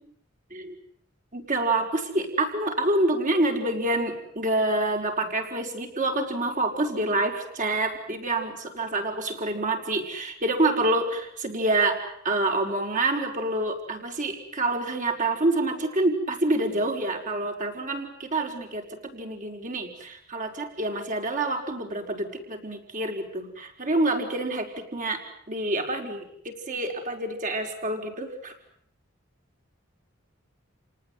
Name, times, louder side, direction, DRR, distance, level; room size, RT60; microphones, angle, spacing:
voice 1, 1.3-25.2 25.5-28.5, right 2 dB, 40° right, 3 dB, 5.3 m, -27 dB
29.5 x 19.0 x 9.6 m, 0.69 s
head